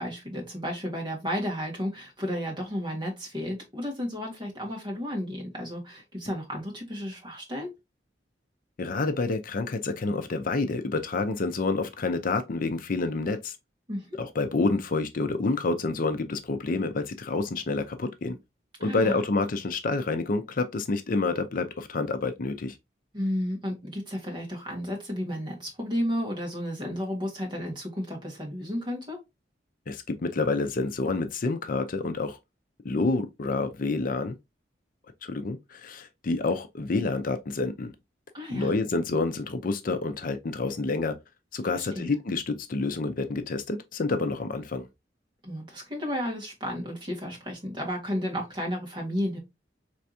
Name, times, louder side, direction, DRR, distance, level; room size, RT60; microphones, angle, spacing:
voice 1, 0.0-7.7 13.9-14.2 18.8-19.2 23.1-29.2 38.3-38.7 41.7-42.1 45.4-49.4, equal, 25° right, 1.7 m, -32 dB
voice 2, 8.8-13.6 14.2-18.4 18.8-22.8 29.9-32.4 32.8-34.4 35.2-37.9 38.5-41.2 41.5-44.9, left 3 dB, 50° left, 0.5 m, -28 dB
4.6 x 3.4 x 2.7 m
head